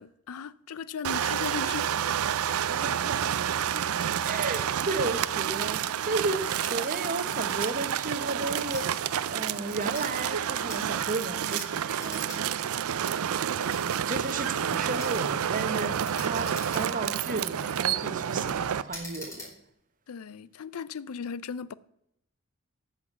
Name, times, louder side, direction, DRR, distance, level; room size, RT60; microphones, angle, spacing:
voice 1, 0.0-2.0 20.1-21.7, left 6 dB, 90° left, 0.5 m, -37 dB
sound 1, 1.0-18.8, right 9 dB, 80° right, 0.4 m, -29 dB
voice 2, 2.4-3.9 4.2-12.7 14.1-19.5, right 3 dB, 40° right, 1.0 m, -34 dB
sound 2, 6.5-6.7 7.4-7.7 8.5-8.9 9.7-10.1 10.5-10.8 11.5-11.7 12.0-12.4 12.7-12.8 13.7-13.8 15.0-15.2 16.0-17.1 17.6-18.0 18.9-19.5, left 1 dB, 15° left, 4.6 m, -43 dB
13.5 x 5.9 x 7.2 m
head